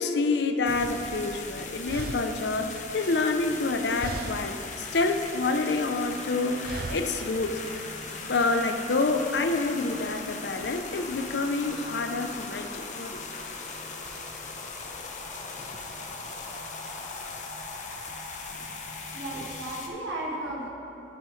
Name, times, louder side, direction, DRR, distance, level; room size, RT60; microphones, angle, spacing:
voice 1, 0.0-7.9 8.3-13.2, left 3 dB, 75° left, 7 dB, 0.6 m, -28 dB
sound 1, 0.6-19.9, left 3 dB, 40° left, 0.8 m, -39 dB
sound 2, 1.3-1.4 1.8-3.7 4.0-4.7 5.0-5.9 6.6-7.3, right 4 dB, 55° right, 0.4 m, -39 dB
voice 2, 19.1-20.7, right 1 dB, 80° right, -5 dB, 1.9 m, -34 dB
14.5 x 6.8 x 3.2 m, 2.9 s
head